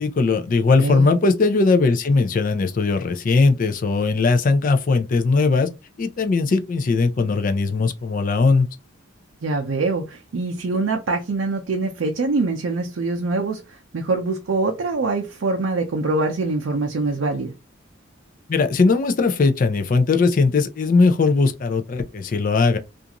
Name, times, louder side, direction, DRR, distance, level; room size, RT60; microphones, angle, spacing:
voice 1, 0.0-5.7 6.0-8.7 18.5-22.8, left 3 dB, 40° left, 0.4 m, -19 dB
voice 2, 0.8-1.1 9.4-17.5, right 3 dB, 75° right, 0.5 m, -24 dB
2.5 x 2.4 x 2.8 m
head